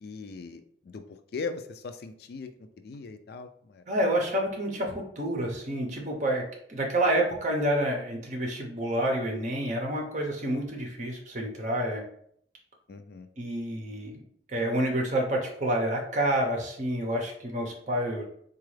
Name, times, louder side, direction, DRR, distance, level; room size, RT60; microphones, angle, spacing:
voice 1, 0.0-2.5 2.8-3.8 12.9-13.3, left 4 dB, 55° left, 8 dB, 0.3 m, -39 dB
voice 2, 3.9-6.4 6.7-12.0 13.4-14.2 14.5-18.2, right 1 dB, 40° right, 0 dB, 0.8 m, -28 dB
4.0 x 2.4 x 3.2 m, 0.65 s
head